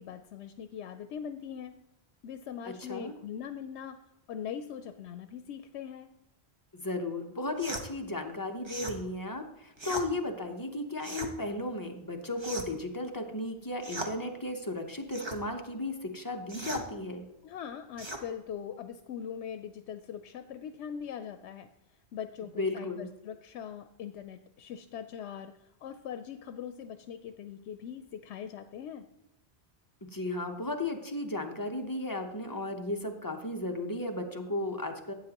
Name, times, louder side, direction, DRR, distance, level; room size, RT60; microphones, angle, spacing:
voice 1, 0.0-1.8 2.2-6.1 17.4-21.7 22.1-29.1, left 8 dB, 85° left, 8 dB, 0.9 m, -41 dB
voice 2, 2.7-3.2 6.7-17.2 22.6-23.1 30.1-35.1, left 2 dB, 20° left, 3 dB, 0.8 m, -35 dB
sound 1, 7.6-7.9 8.6-9.0 9.8-10.1 11.0-11.3 12.4-12.8 13.8-14.1 15.1-15.4 16.5-16.9 18.0-18.2, right 2 dB, 25° right, 0.9 m, -38 dB
12.0 x 8.8 x 2.9 m, 0.90 s
omnidirectional pair, 1.1 m